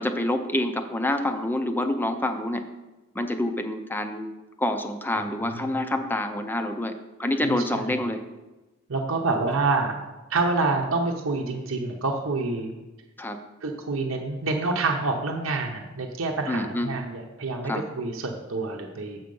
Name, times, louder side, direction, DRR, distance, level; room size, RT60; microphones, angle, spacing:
voice 1, 0.0-2.6 3.2-4.3 4.6-8.2 13.2-13.4 16.5-17.0 17.6-17.8, left 1 dB, 10° left, 7 dB, 0.5 m, -27 dB
voice 2, 7.4-8.0 8.9-10.0 10.3-12.7 13.6-19.2, right 3 dB, 70° right, 1 dB, 0.8 m, -27 dB
7.6 x 5.7 x 5.3 m, 1.1 s
head